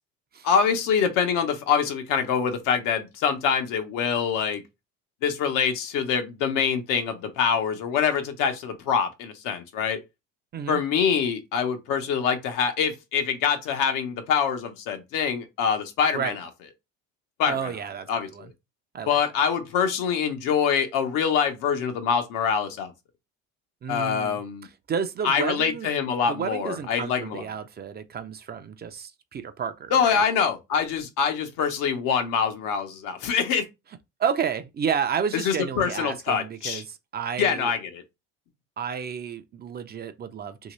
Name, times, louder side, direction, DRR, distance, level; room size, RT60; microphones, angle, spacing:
voice 1, 0.4-4.6 5.2-10.0 10.7-16.5 17.4-17.7 18.1-18.5 19.1-22.9 23.9-24.7 25.2-27.4 29.9-33.6 35.3-36.8 37.4-38.0, left 7 dB, 75° left, 0.9 m, -25 dB
voice 2, 17.5-18.5 18.9-19.2 23.8-25.9 26.3-30.2 34.2-37.7 38.8-40.7, right 7 dB, 30° right, 0.5 m, -31 dB
2.9 x 2.7 x 3.1 m
supercardioid pair, 95°, 32 cm